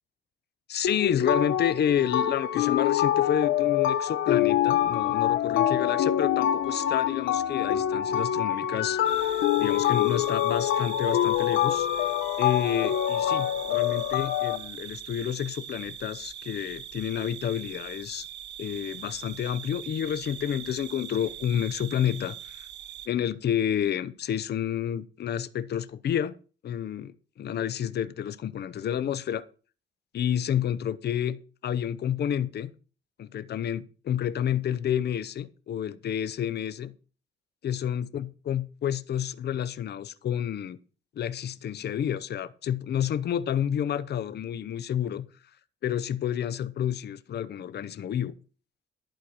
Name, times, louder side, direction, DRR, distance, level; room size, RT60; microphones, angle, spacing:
voice 1, 0.7-12.0 12.4-18.3 18.6-22.7 23.1-26.4 26.6-29.4 30.1-32.7 33.2-36.9 37.6-40.8 41.1-45.3 45.8-48.3, left 9 dB, 55° left, 0.8 m, -30 dB
sound 1, 0.8-14.6, left 11 dB, 85° left, 1.1 m, -25 dB
sound 2, 9.0-23.1, right 9 dB, 60° right, 0.9 m, -41 dB
11.5 x 4.5 x 7.8 m
cardioid pair, 90°, 20 cm